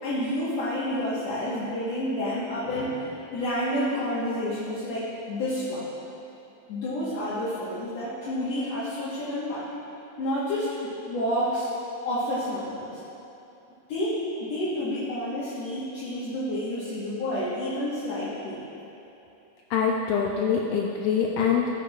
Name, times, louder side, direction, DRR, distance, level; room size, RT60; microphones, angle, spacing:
voice 1, 0.0-5.9 6.7-9.7 10.2-11.7 12.1-13.0 13.9-18.6, left 1 dB, 65° left, -10 dB, 2.3 m, -29 dB
voice 2, 19.7-21.7, left 6 dB, 80° left, -1 dB, 1.5 m, -24 dB
14.5 x 7.0 x 2.4 m, 2.9 s
omnidirectional pair, 3.4 m